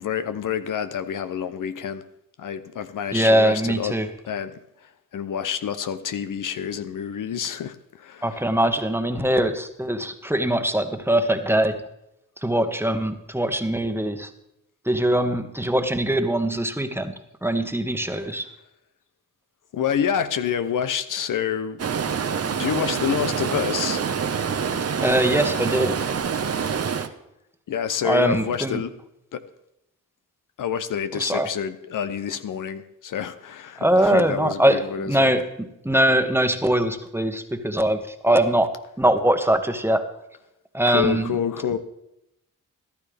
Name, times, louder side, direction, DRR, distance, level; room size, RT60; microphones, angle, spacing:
voice 1, 0.0-2.0 2.4-4.0 4.3-8.4 18.1-18.5 19.7-21.8 22.1-22.3 22.5-24.0 27.7-28.9 29.3-29.4 30.6-35.3 40.9-41.8, left 8 dB, 65° left, 0.8 m, -28 dB
voice 2, 3.1-4.1 8.2-11.8 12.4-14.3 14.9-17.1 17.4-18.4 25.0-26.1 28.0-28.8 31.2-31.5 33.8-35.4 35.8-40.0 40.7-41.3, right 1 dB, 5° right, 1.3 m, -22 dB
Stream, 21.8-27.1, right 6 dB, 45° right, 0.9 m, -26 dB
14.0 x 12.0 x 3.4 m
supercardioid pair, 45°, 33 cm